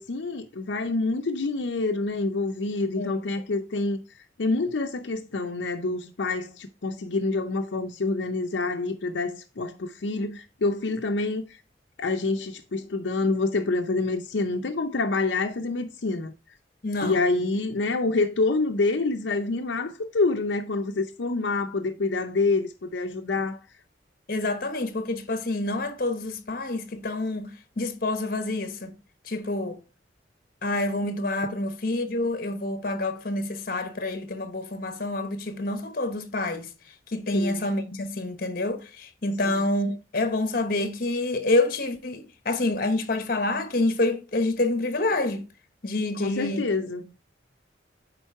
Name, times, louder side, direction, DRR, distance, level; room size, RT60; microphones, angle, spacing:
voice 1, 0.0-4.0 4.4-11.6 12.0-16.3 17.0-23.6 37.3-37.6 39.4-39.6 46.2-47.1, left 3 dB, 80° left, 0.6 m, -27 dB
voice 2, 16.8-17.2 24.3-28.9 29.3-29.8 30.6-36.7 37.1-45.5 45.8-46.6, left 2 dB, 50° left, 1.0 m, -27 dB
9.0 x 3.9 x 4.6 m
head